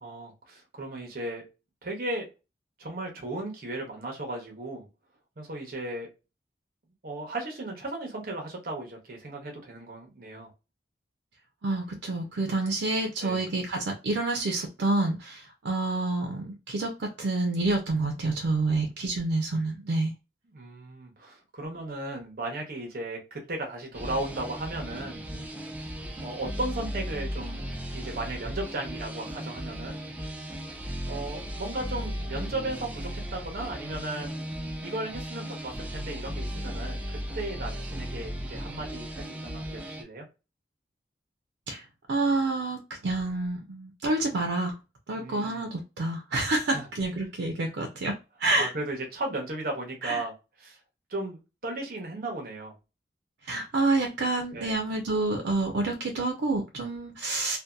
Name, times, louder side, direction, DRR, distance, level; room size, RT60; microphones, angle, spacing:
voice 1, 0.0-1.4 1.8-2.3 2.8-4.9 5.4-6.1 7.0-10.5 13.2-13.4 20.5-25.2 26.2-27.6 27.9-30.2 31.1-34.4 34.8-40.2 45.1-45.7 46.7-46.9 48.6-50.3 50.6-50.8 51.1-52.7 54.5-54.8, right 2 dB, 55° right, 1 dB, 0.8 m, -36 dB
voice 2, 11.6-20.1 41.7-44.7 45.1-48.7 50.0-50.2 53.4-57.6, right 2 dB, 90° right, 3 dB, 0.5 m, -28 dB
sound 1, 23.9-40.0, equal, 10° right, 0.3 m, -36 dB
2.7 x 2.1 x 2.2 m, 0.29 s
head